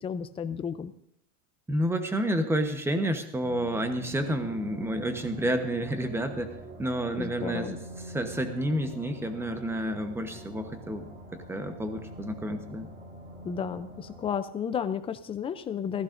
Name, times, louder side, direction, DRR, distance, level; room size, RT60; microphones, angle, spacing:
voice 1, 0.0-0.9 7.2-7.7 13.4-16.0, left 7 dB, 15° left, 11 dB, 0.4 m, -32 dB
voice 2, 1.7-6.5 6.8-7.8 8.1-12.9, right 1 dB, 5° right, 7 dB, 1.0 m, -30 dB
sound 1, 3.4-14.3, equal, 35° right, 5.8 m, -44 dB
15.5 x 14.5 x 2.6 m, 0.73 s
supercardioid pair, 140°, 39 cm